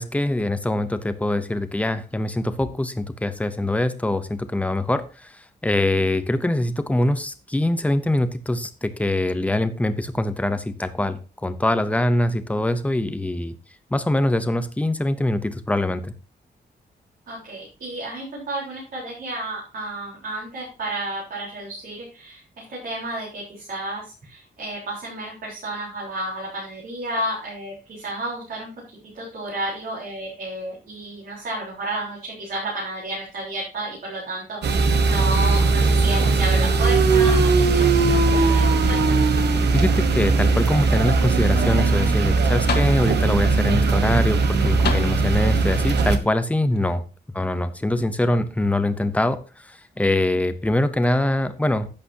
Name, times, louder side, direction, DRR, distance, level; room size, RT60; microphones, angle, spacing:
voice 1, 0.0-13.5 13.9-16.1 39.7-47.0 47.3-51.9, left 1 dB, 10° left, 11 dB, 0.7 m, -23 dB
voice 2, 17.3-22.4 22.7-28.7 29.1-39.2, right 1 dB, 60° right, -6 dB, 4.2 m, -31 dB
sound 1, 34.6-46.2, right 4 dB, 80° right, 1.3 m, -19 dB
sound 2, 37.7-38.4 38.8-39.8 40.5-40.6 42.2-42.3 42.7-43.4 44.8-45.7 46.8-46.9, left 6 dB, 80° left, 1.9 m, -33 dB
11.0 x 8.7 x 2.8 m, 0.35 s
wide cardioid pair, 175°, 17 cm